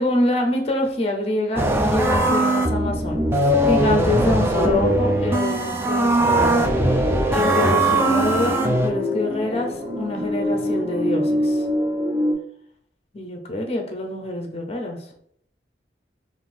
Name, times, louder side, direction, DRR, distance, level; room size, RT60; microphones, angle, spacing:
voice 1, 0.0-6.6 7.3-11.6 13.1-15.0, left 1 dB, 35° left, 3 dB, 0.6 m, -25 dB
sound 1, 1.6-8.9, right 1 dB, 15° right, 0.4 m, -20 dB
sound 2, 2.1-11.5, right 1 dB, 60° right, 1.2 m, -44 dB
sound 3, 7.0-12.3, left 1 dB, 40° right, 1.4 m, -25 dB
3.7 x 2.5 x 4.3 m, 0.68 s
head